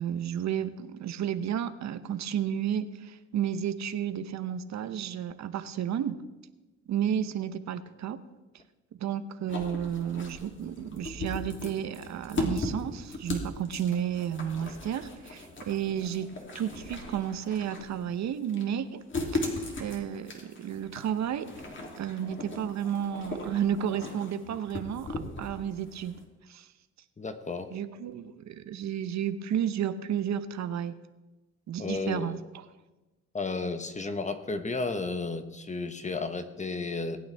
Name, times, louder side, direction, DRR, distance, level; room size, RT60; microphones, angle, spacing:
voice 1, 0.0-6.2 6.9-8.2 9.0-19.0 19.3-19.5 19.8-21.5 22.0-26.2 26.5-26.7 27.7-30.9 31.7-32.6, right 9 dB, 65° right, 11 dB, 0.8 m, -32 dB
sound 1, 9.5-26.2, left 2 dB, 40° left, 2.8 m, -38 dB
voice 2, 27.2-27.7 31.8-32.4 33.3-37.2, left 3 dB, 25° left, 9 dB, 1.1 m, -33 dB
19.5 x 8.9 x 3.4 m, 1.1 s
cardioid pair, 90°, 30 cm